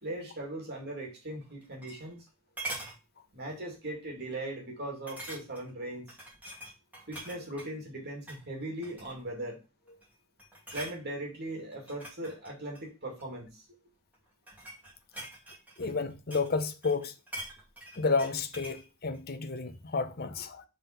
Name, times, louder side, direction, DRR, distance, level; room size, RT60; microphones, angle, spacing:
voice 1, 0.0-2.2 3.3-6.2 7.1-9.6 10.7-13.7, right 1 dB, 45° right, 2.1 m, -39 dB
sound 1, 1.4-2.3 2.6-3.0 3.5-3.7 4.0-4.1 5.1-5.7 6.1-7.7 8.2-8.4 8.8-9.3 9.9-10.1 10.4-11.0 11.7-13.3 14.1-16.6 16.8-18.8 19.1-19.2, right 1 dB, 5° right, 2.5 m, -43 dB
voice 2, 15.8-17.1 18.0-20.6, left 4 dB, 45° left, 0.8 m, -31 dB
5.3 x 3.7 x 5.8 m
head